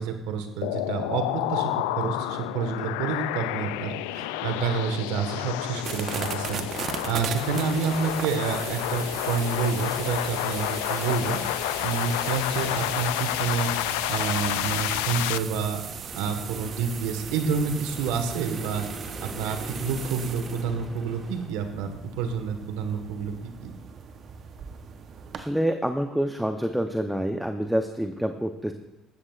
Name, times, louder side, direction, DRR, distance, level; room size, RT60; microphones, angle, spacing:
voice 1, 0.0-13.7 14.1-15.8 16.1-18.8 19.2-21.9 22.2-23.7, right 5 dB, 80° right, 7 dB, 1.5 m, -29 dB
sound 1, 0.6-15.4, left 16 dB, 85° left, 0.3 m, -30 dB
sound 2, 5.8-25.4, right 7 dB, 55° right, 1.0 m, -38 dB
sound 3, 15.9-21.5, right 2 dB, 35° right, 2.2 m, -41 dB
voice 2, 25.4-28.7, equal, 5° right, 6 dB, 0.8 m, -27 dB
16.5 x 13.0 x 2.5 m, 0.89 s
supercardioid pair, 70°, 0 cm